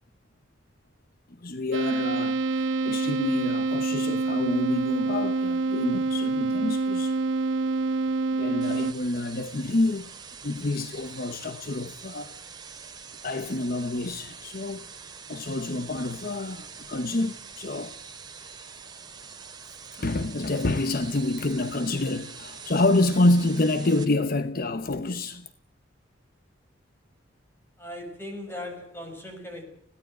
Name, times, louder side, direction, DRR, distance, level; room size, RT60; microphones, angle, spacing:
voice 1, 1.4-7.2 8.4-10.1 10.4-12.4 13.2-14.8 15.3-18.0 20.0-25.5, left 2 dB, 50° left, 0.9 m, -27 dB
sound 1, 1.7-8.9, right 3 dB, 75° right, 1.3 m, -26 dB
sound 2, 8.6-24.0, right 6 dB, 20° right, 3.2 m, -44 dB
voice 2, 27.8-29.6, left 1 dB, 10° left, 6.1 m, -38 dB
21.0 x 16.5 x 9.1 m
head